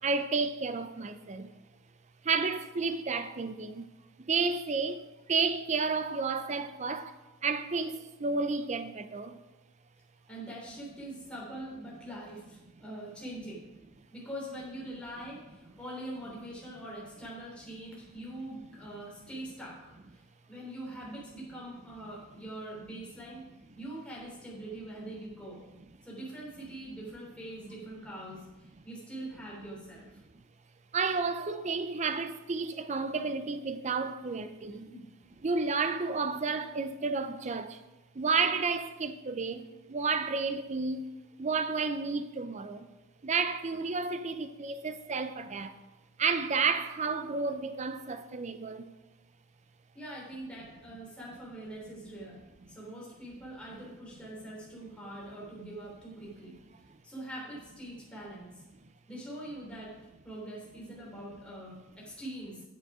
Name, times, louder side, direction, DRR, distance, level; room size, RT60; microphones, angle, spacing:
voice 1, 0.0-1.5 2.2-3.9 4.2-7.2 7.4-9.4 30.9-34.9 35.4-37.8 38.1-41.1 41.4-42.9 43.2-45.7 46.2-48.9, right 4 dB, 35° right, 0.5 m, -31 dB
voice 2, 10.3-13.6 14.1-20.2 20.5-23.4 23.8-25.6 26.0-30.2 34.8-35.1 49.9-52.4 52.7-56.6 57.0-58.6 59.1-59.9 60.2-62.6, right 1 dB, 5° left, 3.2 m, -43 dB
9.3 x 7.7 x 4.9 m
head